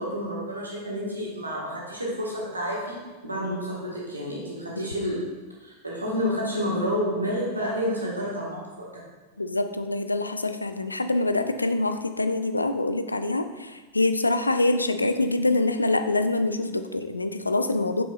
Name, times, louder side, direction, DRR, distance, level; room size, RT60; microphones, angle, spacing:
voice 1, 0.0-3.0 3.2-5.2 5.6-9.0, equal, 85° right, -4 dB, 1.7 m, -29 dB
voice 2, 9.4-18.0, left 2 dB, 80° left, 9 dB, 0.3 m, -25 dB
6.9 x 5.9 x 2.6 m, 1.3 s
figure-of-eight pair, 90°, 0 cm